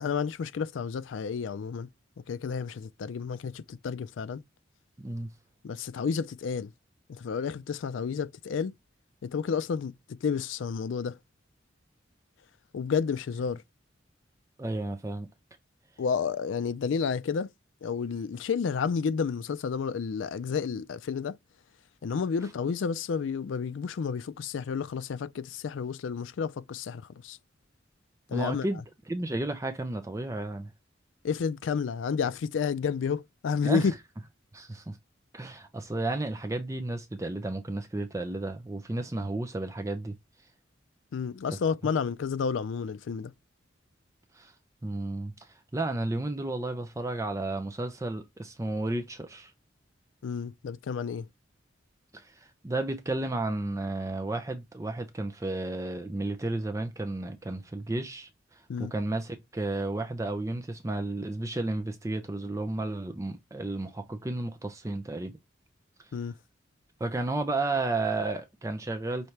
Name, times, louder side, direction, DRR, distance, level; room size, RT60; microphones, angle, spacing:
voice 1, 0.0-1.9 2.2-4.4 5.6-6.7 7.1-8.7 9.2-11.2 12.7-13.6 16.0-17.5 17.8-21.4 22.0-27.4 28.3-28.7 31.2-33.9 41.1-43.3 50.2-51.3 58.7-58.9 66.1-66.4, left 6 dB, 80° left, 0.4 m, -31 dB
voice 2, 5.0-5.3 14.6-15.3 28.3-28.8 29.1-30.7 33.6-33.8 34.5-35.0 35.3-40.1 44.3-44.5 44.8-49.5 52.1-65.4 67.0-69.3, right 2 dB, 15° right, 0.5 m, -32 dB
5.8 x 2.8 x 3.2 m
head